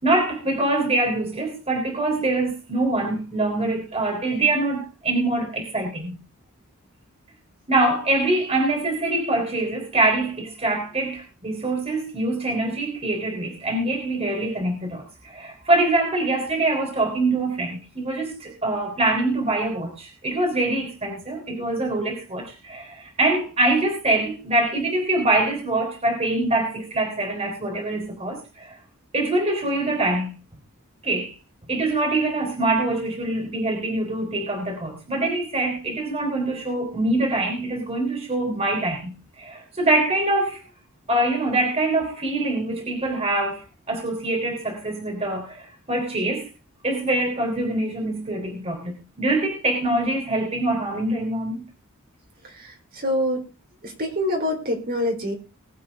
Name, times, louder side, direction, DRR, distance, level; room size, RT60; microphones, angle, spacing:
voice 1, 0.0-6.2 7.7-28.8 29.1-30.3 31.0-31.4 31.7-40.6 41.1-46.5 46.8-51.6, right 2 dB, 30° right, 3.5 m, -24 dB
voice 2, 52.4-53.5 53.8-55.3, left 1 dB, 45° right, 3.9 m, -26 dB
20.5 x 8.4 x 3.6 m
head